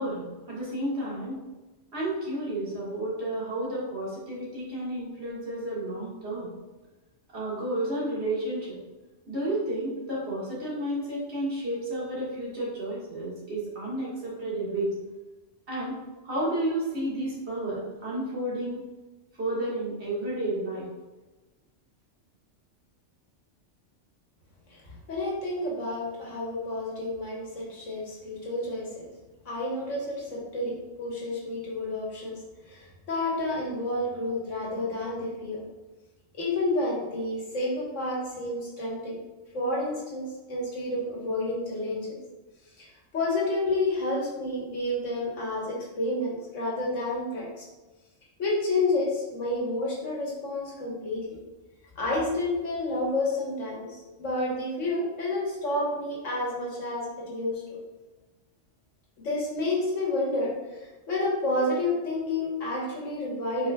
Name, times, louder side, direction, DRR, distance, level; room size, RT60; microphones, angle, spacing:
voice 1, 0.0-1.5 1.9-6.5 7.3-8.8 9.3-14.9 15.7-18.8 19.4-20.9, right 1 dB, 60° right, -7 dB, 2.0 m, -31 dB
voice 2, 25.1-28.9 29.4-32.4 32.7-35.6 36.4-39.2 39.5-42.1 42.8-42.9 43.1-47.6 48.4-51.3 51.9-57.6 59.2-63.7, left 2 dB, 85° left, -4 dB, 1.7 m, -30 dB
5.0 x 4.3 x 2.3 m, 1.2 s
omnidirectional pair, 1.3 m